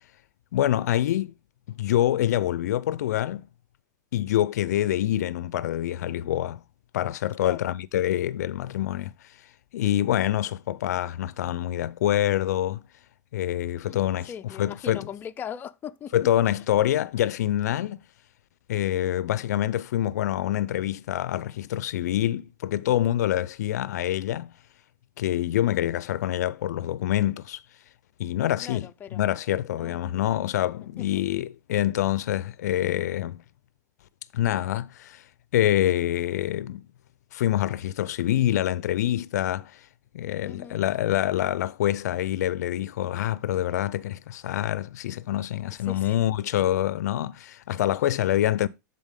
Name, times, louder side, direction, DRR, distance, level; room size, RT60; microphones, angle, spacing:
voice 1, 0.5-1.3 1.7-3.5 4.1-6.6 6.9-9.1 9.7-12.8 13.3-14.3 14.6-15.1 16.1-18.0 18.7-24.5 25.2-27.6 28.2-33.4 34.3-35.2 35.5-36.8 37.3-39.7 40.1-48.7, left 12 dB, 70° left, 0.5 m, -26 dB
voice 2, 14.3-16.1 28.6-29.2 29.8-30.3 31.0-31.1 40.4-40.8 45.9-46.2, left 8 dB, 20° left, 0.5 m, -39 dB
12.0 x 4.1 x 3.6 m
hypercardioid pair, 115°, 9 cm